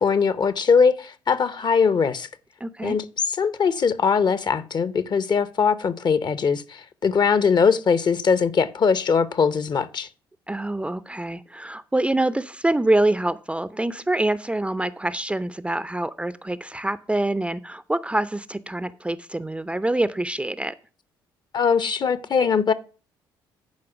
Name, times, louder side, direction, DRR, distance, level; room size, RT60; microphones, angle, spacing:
voice 1, 0.0-2.3 2.8-3.0 3.4-10.1 21.5-22.7, left 5 dB, 40° left, 0.8 m, -21 dB
voice 2, 2.6-3.0 10.5-20.7, right 1 dB, 10° right, 0.5 m, -25 dB
10.5 x 4.9 x 5.9 m
hypercardioid pair, 50°, 11 cm